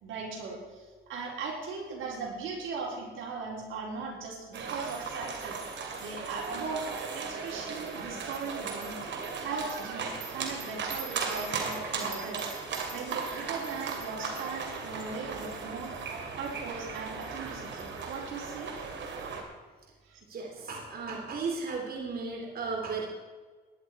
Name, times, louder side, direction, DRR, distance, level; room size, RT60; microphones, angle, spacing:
voice 1, 0.0-5.6 6.0-6.9 7.1-9.0 9.3-15.9 16.4-18.7 20.1-20.2, right 4 dB, 85° right, -1 dB, 4.2 m, -38 dB
sound 1, 4.5-19.4, right 5 dB, 65° right, 3.0 m, -37 dB
voice 2, 20.3-23.1, right 4 dB, 50° right, 0 dB, 2.7 m, -35 dB
17.5 x 11.0 x 4.6 m, 1.4 s
cardioid pair, 90°, 20 cm